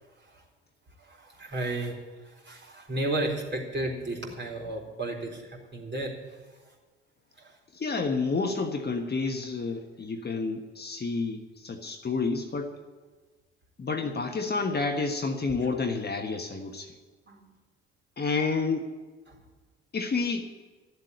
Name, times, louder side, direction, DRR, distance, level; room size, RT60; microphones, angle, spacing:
voice 1, 1.0-1.9 2.2-6.2 7.4-7.5 17.3-17.4 19.3-19.4, right 1 dB, 35° right, -1 dB, 4.0 m, -33 dB
voice 2, 7.7-12.7 13.8-16.9 18.2-18.9 19.9-20.4, left 4 dB, 30° left, 4 dB, 1.4 m, -29 dB
13.0 x 7.7 x 9.6 m, 1.3 s
hypercardioid pair, 55°, 31 cm